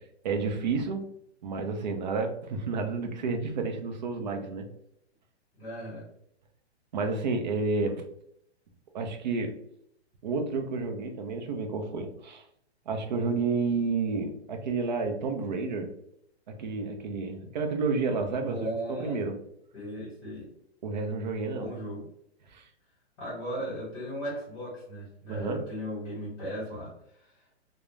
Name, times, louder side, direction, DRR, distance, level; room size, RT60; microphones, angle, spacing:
voice 1, 0.2-1.1 1.4-4.7 6.9-8.1 8.9-9.5 10.2-12.4 12.9-15.9 16.5-19.4 20.8-21.7 22.5-22.7 25.3-25.7, right 4 dB, 45° right, 5 dB, 0.4 m, -30 dB
voice 2, 5.6-6.0 18.4-19.2 19.7-20.5 21.5-22.0 23.2-26.9, equal, 25° left, -7 dB, 1.1 m, -36 dB
2.3 x 2.1 x 3.0 m, 0.73 s
hypercardioid pair, 160°, 34 cm